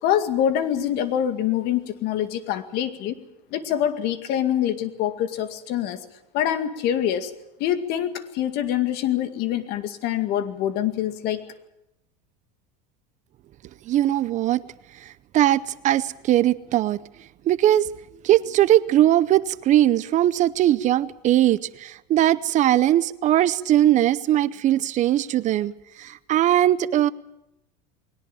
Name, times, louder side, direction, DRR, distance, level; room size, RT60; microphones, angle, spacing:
voice 1, 0.0-3.1 3.5-6.0 6.3-7.3 7.6-11.4, left 10 dB, 55° left, 10 dB, 2.1 m, -25 dB
voice 2, 13.9-14.6 15.3-17.0 17.5-17.9 18.2-25.7 26.0-27.1, right 13 dB, 35° right, 16 dB, 0.7 m, -20 dB
21.0 x 18.0 x 9.1 m, 0.87 s
supercardioid pair, 125°, 20 cm